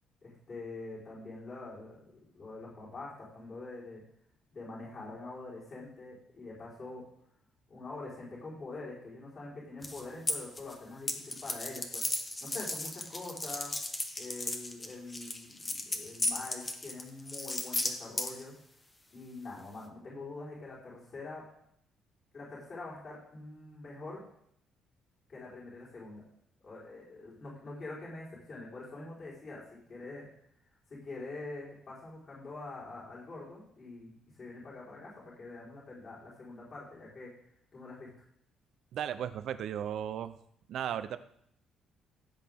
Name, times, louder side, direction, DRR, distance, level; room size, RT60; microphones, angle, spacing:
voice 1, 0.2-2.0 2.3-4.0 4.5-7.0 7.7-12.0 12.4-13.7 14.2-18.5 19.1-21.4 22.3-24.2 25.3-26.2 26.6-30.3 30.9-37.3 37.7-38.1, left 3 dB, 35° left, -7 dB, 4.6 m, -45 dB
sound 1, 9.8-10.7 11.1-18.4, left 2 dB, 15° left, 1.1 m, -35 dB
voice 2, 38.9-40.3 40.7-41.2, right 9 dB, 60° right, 11 dB, 0.7 m, -35 dB
16.0 x 8.2 x 3.7 m, 0.71 s
cardioid pair, 160°, 0 cm